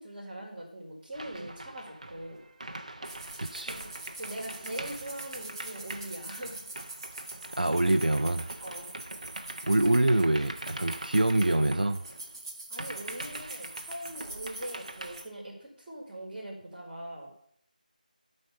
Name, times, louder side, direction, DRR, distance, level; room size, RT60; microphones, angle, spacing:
voice 1, 0.0-2.4 3.7-3.9 4.2-6.6 8.6-9.0 9.6-9.7 12.7-17.3, right 1 dB, 10° right, -11 dB, 3.1 m, -41 dB
sound 1, 1.1-12.4 12.8-15.2, right 2 dB, 50° right, 1.0 m, -43 dB
sound 2, 3.0-15.3, right 2 dB, 25° right, 1.3 m, -44 dB
voice 2, 3.4-3.8 7.6-8.5 9.6-12.0, right 1 dB, 70° right, 9 dB, 0.7 m, -25 dB
11.5 x 5.5 x 6.7 m, 0.67 s
figure-of-eight pair, 165°, 5 cm